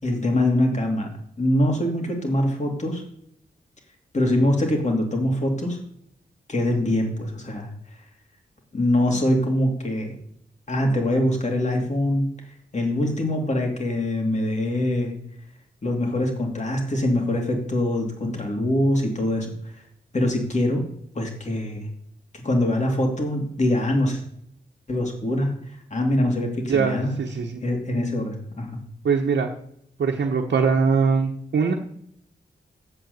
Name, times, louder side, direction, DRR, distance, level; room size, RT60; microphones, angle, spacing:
voice 1, 0.0-1.1 1.4-3.0 4.1-5.8 6.5-7.7 8.7-10.1 10.7-12.3 12.7-15.2 15.8-19.5 20.1-20.8 21.1-21.9 22.3-24.2 24.9-25.5 25.9-27.1 27.6-28.8, left 1 dB, 40° left, 1 dB, 2.8 m, -23 dB
voice 2, 26.7-27.6 29.0-29.5 30.0-31.7, right 5 dB, 80° right, 0 dB, 1.1 m, -22 dB
8.0 x 7.9 x 8.0 m, 0.71 s
wide cardioid pair, 120°, 18 cm